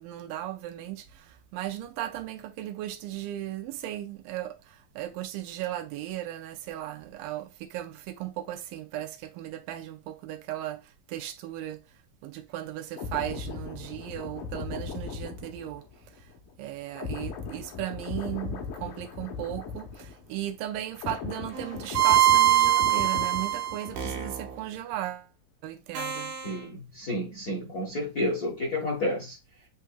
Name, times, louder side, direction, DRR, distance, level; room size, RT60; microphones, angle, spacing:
voice 1, 0.0-16.3 16.6-25.3 25.6-26.4, right 13 dB, 85° right, 2.2 m, -36 dB
sound 1, 12.9-20.5 20.7-24.4 24.7-25.0, left 5 dB, 75° left, 2.5 m, -38 dB
sound 2, 21.5-24.6 26.0-26.6, right 12 dB, 70° right, 2.4 m, -23 dB
voice 2, 26.4-29.4, left 1 dB, 60° left, 0.9 m, -30 dB
8.1 x 2.8 x 2.2 m
omnidirectional pair, 3.9 m